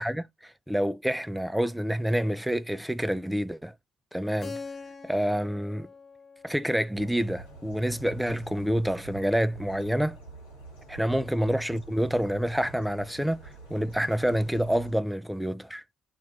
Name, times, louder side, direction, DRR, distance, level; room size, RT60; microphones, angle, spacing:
voice 1, 0.0-3.7 4.1-4.6 5.0-5.9 6.4-10.2 10.9-13.4 13.7-15.8, equal, 5° right, 0.3 m, -27 dB
Keyboard (musical), 4.4-9.0, left 4 dB, 35° left, 0.6 m, -45 dB
sound 1, 6.9-14.9, right 3 dB, 85° left, 0.9 m, -47 dB
2.4 x 2.2 x 3.3 m
hypercardioid pair, 50°, 0 cm